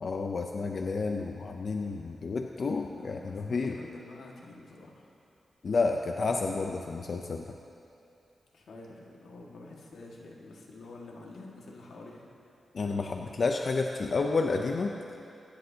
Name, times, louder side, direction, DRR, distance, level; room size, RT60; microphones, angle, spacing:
voice 1, 0.0-3.8 5.6-7.5 12.7-15.0, left 4 dB, 55° left, 3 dB, 0.6 m, -30 dB
voice 2, 3.0-5.1 8.5-12.3, left 2 dB, 85° left, -2 dB, 1.8 m, -48 dB
23.5 x 10.5 x 2.8 m, 2.7 s
wide cardioid pair, 90°, 0 cm